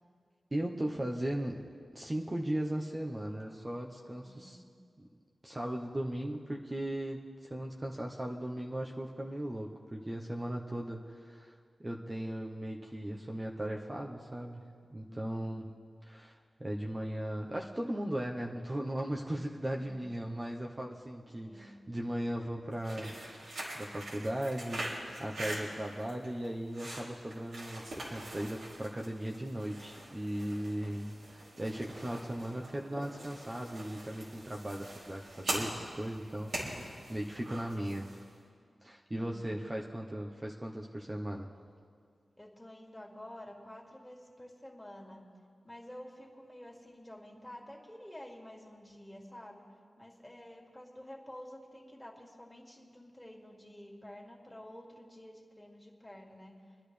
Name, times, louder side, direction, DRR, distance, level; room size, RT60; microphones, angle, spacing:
voice 1, 0.5-1.6 1.9-4.6 5.0-5.1 5.4-11.5 11.8-14.6 14.9-15.6 16.0-23.4 23.7-24.9 25.2-31.2 31.6-38.1 38.8-41.5, right 1 dB, 25° right, -1 dB, 1.0 m, -37 dB
voice 2, 4.2-4.7 15.1-15.5 19.7-20.0 21.4-21.7 39.1-39.5 42.4-45.3 45.6-49.7 50.0-56.8, left 1 dB, 15° left, -1 dB, 2.4 m, -50 dB
sound 1, 22.7-38.3, right 1 dB, 85° right, 3.3 m, -43 dB
26.5 x 10.5 x 3.4 m, 2.1 s
cardioid pair, 50°, 0 cm